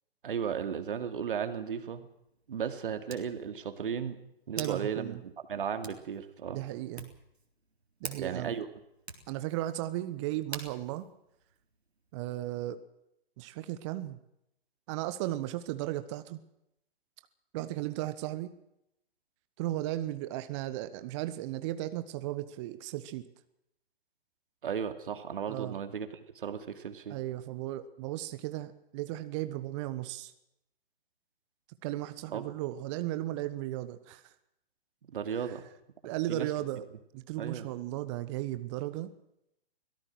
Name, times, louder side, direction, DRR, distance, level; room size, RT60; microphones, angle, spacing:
voice 1, 0.2-2.1 2.5-4.2 4.5-6.6 8.2-8.7 24.6-26.1 26.3-27.2 32.3-32.4 35.1-35.6 36.3-36.5 37.4-37.7, right 7 dB, 55° right, 8 dB, 2.7 m, -35 dB
Hands, 1.5-12.2, right 3 dB, 85° right, 3.9 m, -49 dB
voice 2, 4.6-5.2 6.5-7.1 8.0-8.5 9.3-11.0 12.1-12.8 13.4-14.2 14.9-16.4 17.5-18.5 19.6-23.2 25.5-25.8 27.1-30.3 31.8-34.3 35.4-35.5 36.0-36.9 37.1-39.1, right 15 dB, 30° right, 12 dB, 1.2 m, -35 dB
23.5 x 17.5 x 6.3 m, 0.81 s
figure-of-eight pair, 125°, 31 cm